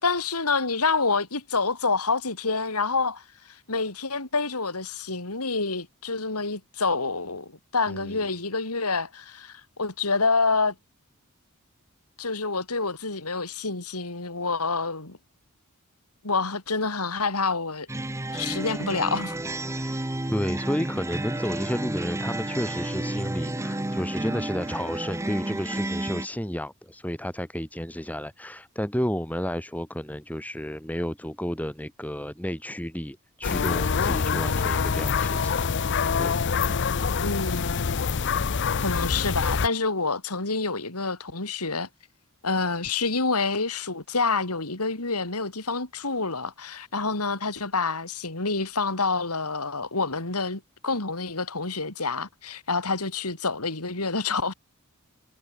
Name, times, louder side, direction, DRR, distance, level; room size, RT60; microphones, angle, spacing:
voice 1, 0.0-10.7 12.2-15.2 16.2-17.9 18.3-19.4 37.2-38.1 38.8-41.9 42.4-54.5, left 4 dB, 90° left, 4.0 m, -27 dB
voice 2, 7.9-8.2 19.8-20.0 20.3-35.6 36.2-36.4, equal, 5° left, 2.9 m, -31 dB
sound 1, 17.9-26.3, right 1 dB, 15° right, 0.8 m, -31 dB
sound 2, 33.4-39.7, left 5 dB, 55° left, 0.7 m, -25 dB
head